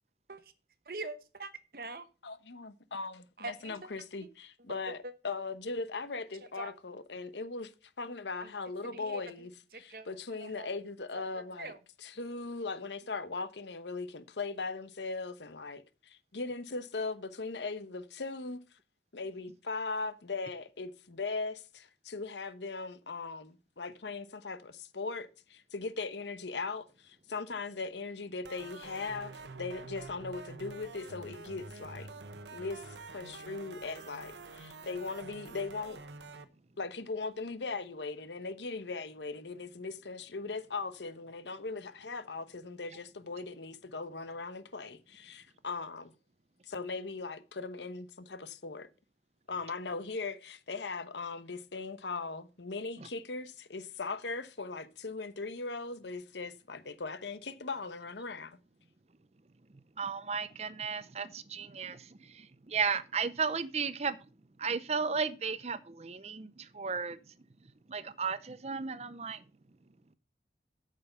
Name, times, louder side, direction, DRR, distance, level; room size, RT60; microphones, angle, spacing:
voice 1, 0.9-2.0 3.4-3.8 4.9-5.1 6.6-6.7 8.4-8.5 8.8-9.2 9.7-10.1 10.4-10.7 11.1-11.8, right 2 dB, 55° right, 1.1 m, -43 dB
voice 2, 2.2-7.7 8.0-11.7 12.0-18.6 19.1-32.1 32.5-36.0 36.8-46.1 46.6-48.9 49.5-58.6, left 3 dB, 85° left, 1.0 m, -39 dB
sound 1, 28.4-36.5, right 3 dB, 85° right, 1.0 m, -47 dB
voice 3, 60.0-62.0 62.7-64.2 64.6-66.5 66.8-67.2 67.9-69.4, right 5 dB, 35° right, 0.6 m, -34 dB
9.0 x 6.6 x 5.4 m
head